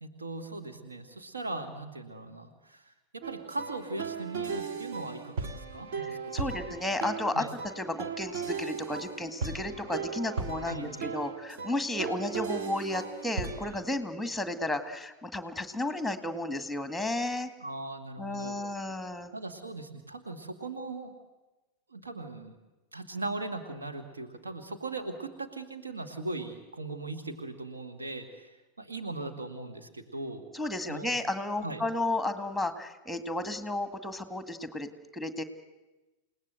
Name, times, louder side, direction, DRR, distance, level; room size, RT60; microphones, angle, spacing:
voice 1, 0.0-6.5 7.3-7.5 10.7-11.1 17.6-18.6 19.3-21.1 21.9-22.6 22.9-30.4 30.9-31.2 31.6-31.8, right 2 dB, 75° right, 4 dB, 2.1 m, -39 dB
sound 1, 3.2-13.8, right 5 dB, 55° right, 1.6 m, -37 dB
voice 2, 6.0-7.5 7.8-17.5 18.2-19.3 30.5-35.4, left 2 dB, ahead, 10 dB, 2.0 m, -33 dB
29.0 x 18.5 x 7.9 m, 1.1 s
figure-of-eight pair, 90°, 0 cm